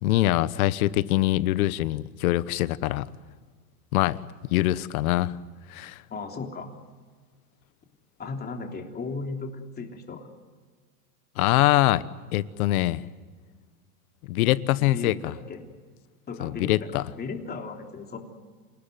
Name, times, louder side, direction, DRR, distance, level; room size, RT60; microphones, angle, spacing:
voice 1, 0.0-3.1 3.9-4.2 4.5-5.3 5.7-6.0 11.4-12.0 12.3-13.0 14.3-15.3 16.4-17.0, left 16 dB, 65° left, 17 dB, 1.1 m, -23 dB
voice 2, 6.1-6.7 8.2-10.3 14.9-15.6 16.3-18.2, left 4 dB, 20° left, 3 dB, 3.4 m, -36 dB
28.5 x 17.0 x 9.3 m, 1.5 s
supercardioid pair, 130°, 45 cm